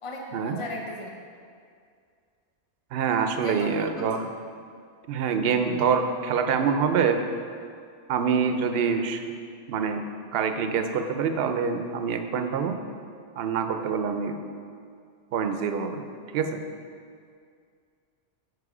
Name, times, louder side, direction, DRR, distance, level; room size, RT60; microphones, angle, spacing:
voice 1, 0.0-1.2 3.4-3.9, left 2 dB, 30° left, 0 dB, 0.8 m, -36 dB
voice 2, 2.9-4.3 5.1-7.2 8.1-9.2 9.7-10.0 10.3-12.8 13.4-14.4 15.3-16.0 16.3-16.6, right 6 dB, 65° right, 7 dB, 0.8 m, -25 dB
9.8 x 4.7 x 4.8 m, 2.2 s
omnidirectional pair, 1.2 m